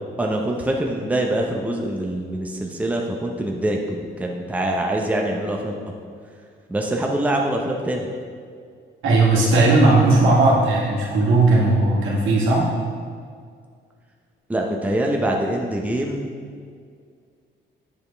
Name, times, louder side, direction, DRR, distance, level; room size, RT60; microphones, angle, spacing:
voice 1, 0.2-5.8 6.7-8.1 14.5-16.3, right 1 dB, 5° right, 0 dB, 0.7 m, -24 dB
voice 2, 9.0-12.7, right 2 dB, 75° right, -4 dB, 1.8 m, -17 dB
8.3 x 5.1 x 3.4 m, 2.1 s
cardioid pair, 90°, 20 cm